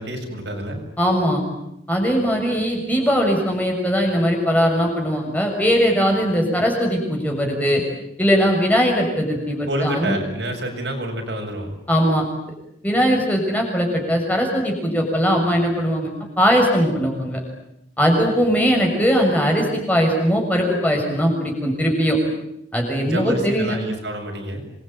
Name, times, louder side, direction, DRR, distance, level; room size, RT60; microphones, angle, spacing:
voice 1, 0.0-0.8 9.7-11.7 23.0-24.6, right 1 dB, 70° right, 2 dB, 7.6 m, -28 dB
voice 2, 1.0-1.4 1.9-7.8 8.2-10.2 11.9-12.3 12.8-17.4 18.0-22.2 22.7-23.8, equal, 10° left, 1 dB, 6.8 m, -20 dB
27.5 x 23.0 x 9.2 m, 0.80 s
head